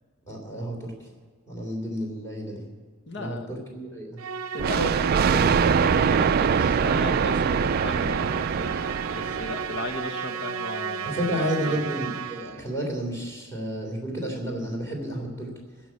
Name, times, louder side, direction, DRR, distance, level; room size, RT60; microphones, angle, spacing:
voice 1, 0.2-1.1 1.5-2.6 3.2-4.2 11.0-15.5, equal, 15° left, 0 dB, 3.3 m, -31 dB
voice 2, 3.1-3.5 4.5-11.2 11.6-11.8, left 1 dB, 50° left, 6 dB, 1.4 m, -35 dB
Musical instrument, 4.2-12.7, right 6 dB, 70° right, 0.7 m, -34 dB
Thunder, 4.6-9.9, right 6 dB, 45° right, 0.3 m, -23 dB
15.5 x 6.1 x 9.7 m, 1.5 s
head